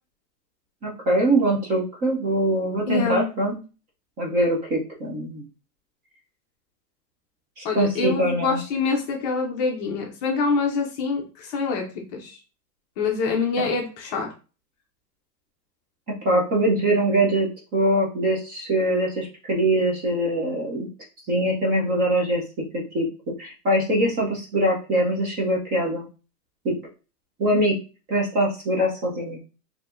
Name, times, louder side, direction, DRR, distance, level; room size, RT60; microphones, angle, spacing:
voice 1, 0.8-3.6 4.2-5.4 7.6-8.6 16.2-20.9 21.3-22.4 22.7-23.1 23.4-26.0 26.6-26.7 27.4-27.8 28.1-29.4, right 1 dB, 20° right, -1 dB, 0.6 m, -23 dB
voice 2, 2.9-3.3 7.6-12.4 13.0-14.3, left 4 dB, 25° left, 0 dB, 0.6 m, -25 dB
4.4 x 2.8 x 2.5 m, 0.33 s
hypercardioid pair, 145°, 50 cm